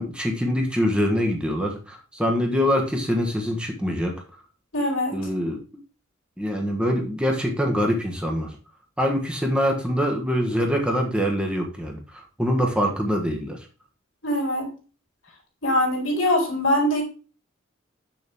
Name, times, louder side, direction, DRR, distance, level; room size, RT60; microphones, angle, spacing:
voice 1, 0.0-4.1 5.1-5.6 6.4-8.6 9.0-13.6, equal, 5° right, 1 dB, 1.2 m, -24 dB
voice 2, 4.7-5.2 14.2-14.7 15.6-17.0, left 1 dB, 70° left, 0 dB, 3.8 m, -22 dB
7.7 x 6.8 x 3.6 m, 0.35 s
head